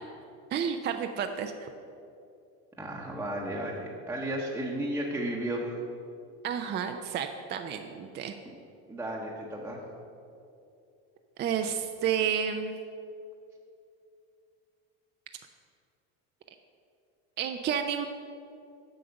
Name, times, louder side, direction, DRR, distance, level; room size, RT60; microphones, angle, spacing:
voice 1, 0.5-1.7 6.4-8.3 11.4-12.8 17.4-18.1, right 8 dB, 30° right, 6 dB, 0.4 m, -31 dB
voice 2, 2.8-5.7 8.9-9.8, right 1 dB, 5° right, -2 dB, 0.9 m, -33 dB
7.8 x 5.0 x 7.0 m, 2.6 s
supercardioid pair, 110°, 35 cm